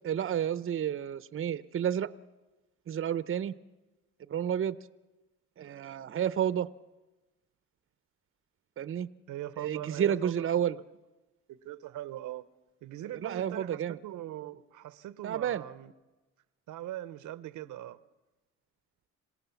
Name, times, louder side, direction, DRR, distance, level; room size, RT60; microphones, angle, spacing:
voice 1, 0.0-2.1 2.9-3.5 4.3-4.8 5.6-6.7 8.8-9.1 9.6-10.8 13.2-14.0 15.2-15.6, right 9 dB, 45° right, 0.7 m, -30 dB
voice 2, 9.3-10.6 11.5-12.4 12.8-15.9 16.7-18.0, right 13 dB, 80° right, 0.8 m, -41 dB
27.0 x 17.0 x 7.0 m
cardioid pair, 90°, 30 cm